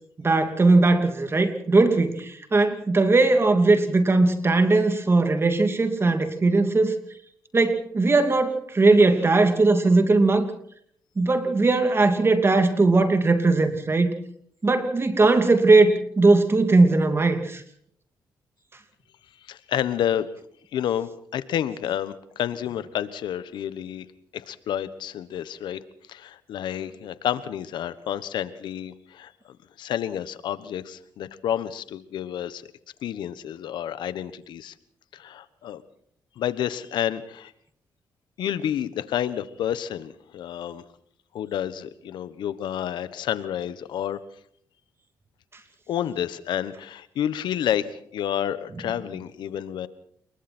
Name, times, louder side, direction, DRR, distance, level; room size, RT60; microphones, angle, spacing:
voice 1, 0.2-7.0 7.5-10.5 11.2-14.1 14.6-17.6, right 3 dB, 30° right, 7 dB, 2.9 m, -19 dB
voice 2, 19.5-20.3 20.7-24.1 24.3-25.8 26.1-29.3 29.8-32.6 33.0-34.7 35.1-35.8 36.4-37.5 38.4-40.8 41.3-44.2 45.9-49.9, left 10 dB, 80° left, 14 dB, 1.3 m, -29 dB
28.0 x 22.5 x 4.5 m, 0.65 s
cardioid pair, 70°, 8 cm